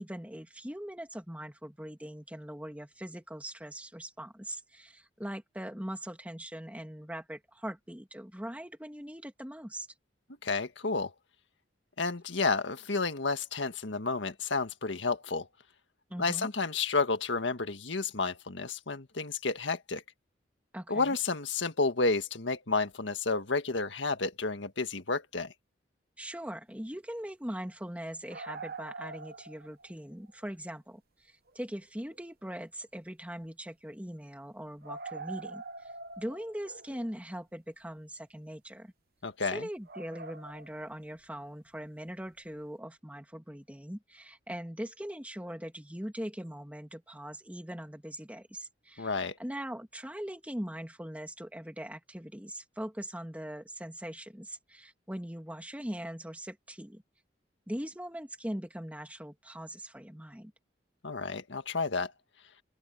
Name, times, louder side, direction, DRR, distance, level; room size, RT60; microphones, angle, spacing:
voice 1, 0.0-9.9 16.1-16.5 20.7-21.2 26.2-38.9 39.5-49.1 49.4-57.0 57.7-60.5, equal, 10° right, 2.7 m, -41 dB
voice 2, 10.4-11.1 12.0-15.5 16.2-20.0 20.9-25.5 39.2-39.7 49.0-49.3 61.0-62.1, left 3 dB, 85° left, 1.7 m, -31 dB
sound 1, 28.1-29.9 30.3-30.4 31.5-31.6 32.1-32.2 32.5-32.6 34.8-37.1 39.9-40.9 42.3-42.4, right 3 dB, 55° right, 1.2 m, -44 dB
open air
head